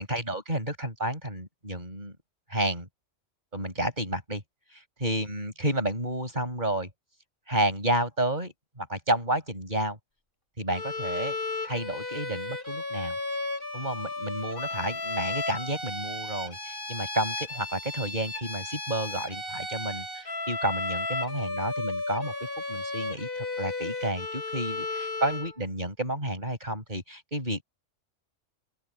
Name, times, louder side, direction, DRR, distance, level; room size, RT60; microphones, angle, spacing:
voice 1, 0.0-2.2 2.5-2.9 3.5-4.4 4.7-6.9 7.5-10.0 10.6-11.4 11.7-13.2 13.7-27.6, right 1 dB, 40° right, 6.6 m, -31 dB
Bowed string instrument, 10.7-25.6, left 2 dB, 45° left, 6.7 m, -34 dB
open air
omnidirectional pair, 1.3 m